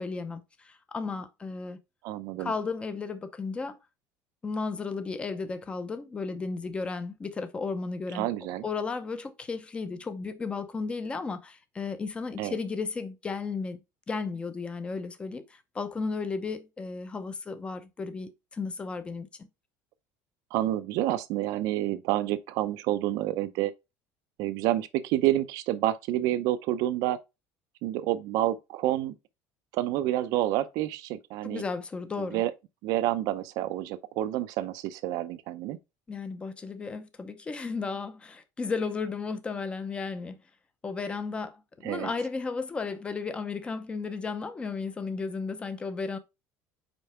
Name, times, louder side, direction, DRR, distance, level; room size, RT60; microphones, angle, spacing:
voice 1, 0.0-1.8 2.4-3.8 4.4-8.3 8.6-13.8 14.1-19.3 31.4-32.4 36.1-40.4 40.8-46.2, left 4 dB, 15° left, 0.7 m, -34 dB
voice 2, 2.0-2.5 8.1-8.6 12.4-12.5 20.5-23.7 24.4-27.2 27.8-29.1 29.7-31.6 32.2-32.5 32.8-35.8 41.8-42.1, right 14 dB, 70° right, 0.6 m, -28 dB
5.2 x 4.6 x 4.3 m
cardioid pair, 155°, 7 cm